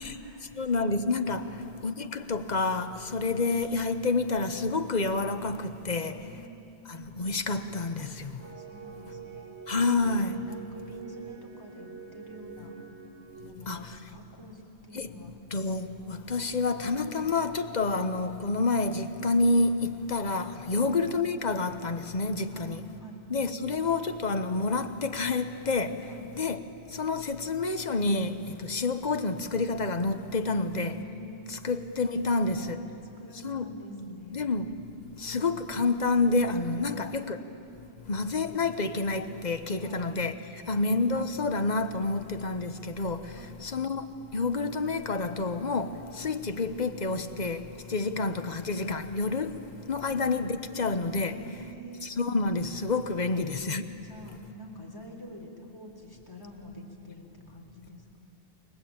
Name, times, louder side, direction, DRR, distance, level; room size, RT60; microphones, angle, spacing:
voice 1, 0.0-0.5 1.3-1.7 5.9-6.9 8.0-8.1 8.6-9.4 9.8-12.7 13.4-15.3 20.7-21.0 22.5-23.2 26.1-26.3 30.5-31.5 32.5-34.5 35.1-35.5 36.8-37.4 39.8-40.1 40.7-40.9 43.4-43.6 50.0-50.2 51.3-52.1 53.3-53.4 54.0-58.1, equal, 20° left, 3.8 m, -46 dB
voice 2, 0.6-1.5 1.8-6.2 6.9-8.4 9.7-10.4 13.7-14.0 14.9-15.1 15.5-22.8 23.3-26.0 26.4-26.6 26.9-31.0 31.5-32.8 33.4-33.7 34.3-34.7 35.2-37.4 38.1-40.3 40.7-43.3 43.6-44.1 44.3-49.5 49.9-51.4 52.0-53.9, left 3 dB, 40° left, 1.2 m, -28 dB
sound 1, 8.4-13.5, right 7 dB, 85° right, 2.2 m, -45 dB
29.5 x 23.0 x 8.7 m
omnidirectional pair, 1.1 m